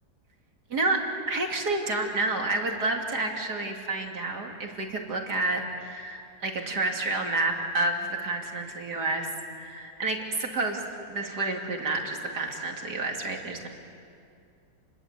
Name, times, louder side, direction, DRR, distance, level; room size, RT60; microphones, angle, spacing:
voice 1, 0.7-9.3 9.6-10.8 11.1-13.7, right 2 dB, 55° right, 2 dB, 3.1 m, -29 dB
30.0 x 21.5 x 8.3 m, 2.4 s
omnidirectional pair, 2.1 m